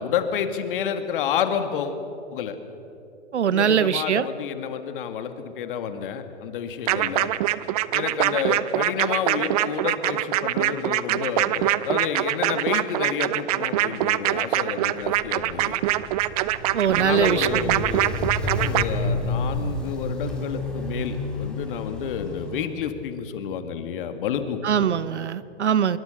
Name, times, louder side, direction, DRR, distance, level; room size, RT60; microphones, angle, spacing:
voice 1, 0.0-2.0 2.3-2.6 3.4-7.3 7.9-15.7 16.9-24.9, left 8 dB, 50° left, 8 dB, 2.2 m, -29 dB
voice 2, 3.3-4.3 16.7-17.8 24.6-26.0, right 8 dB, 75° right, 17 dB, 1.0 m, -22 dB
sound 1, 6.9-18.8, right 15 dB, 35° right, 0.7 m, -24 dB
Walk footsteps, 15.0-22.7, left 2 dB, ahead, 3.4 m, -31 dB
25.5 x 22.5 x 6.7 m, 2.8 s
hypercardioid pair, 130°, 34 cm